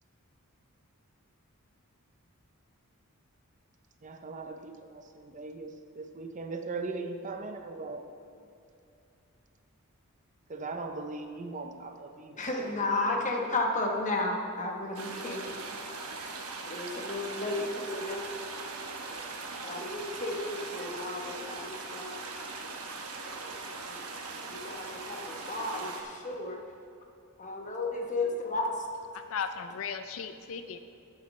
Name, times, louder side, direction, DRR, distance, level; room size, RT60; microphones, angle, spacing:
voice 1, 4.0-8.0 10.5-12.7 13.1-13.2, right 3 dB, 35° right, 6 dB, 0.6 m, -39 dB
voice 2, 12.4-15.5 16.7-18.2 19.6-22.2 23.8-24.0 24.5-26.6 27.4-28.7, left 2 dB, 35° left, 1 dB, 1.1 m, -33 dB
sound 1, 14.9-26.0, right 3 dB, 80° right, 1.0 m, -40 dB
voice 3, 29.1-30.8, left 6 dB, 65° left, 9 dB, 0.4 m, -36 dB
12.5 x 8.6 x 3.2 m, 2.6 s
head